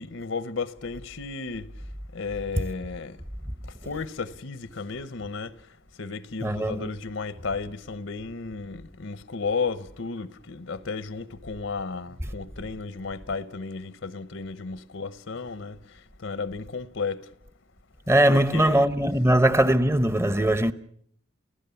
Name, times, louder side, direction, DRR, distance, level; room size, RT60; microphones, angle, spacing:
voice 1, 0.0-1.7 2.1-3.1 3.9-5.5 6.0-15.8 16.2-17.2 18.3-18.8, left 4 dB, 75° left, 0.9 m, -33 dB
voice 2, 6.4-6.9 18.1-20.7, right 1 dB, 15° right, 0.8 m, -21 dB
29.5 x 16.0 x 7.1 m
head